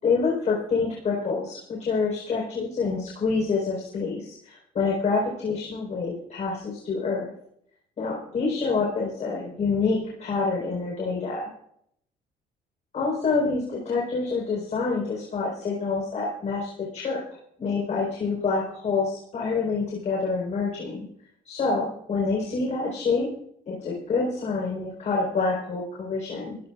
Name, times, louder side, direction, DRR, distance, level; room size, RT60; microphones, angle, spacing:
voice 1, 0.0-7.3 8.0-11.5 12.9-17.2 17.6-21.1 21.4-23.3 23.7-26.6, left 4 dB, 45° left, -3 dB, 4.7 m, -27 dB
26.5 x 16.0 x 2.5 m, 0.70 s
cardioid pair, 110°, 17 cm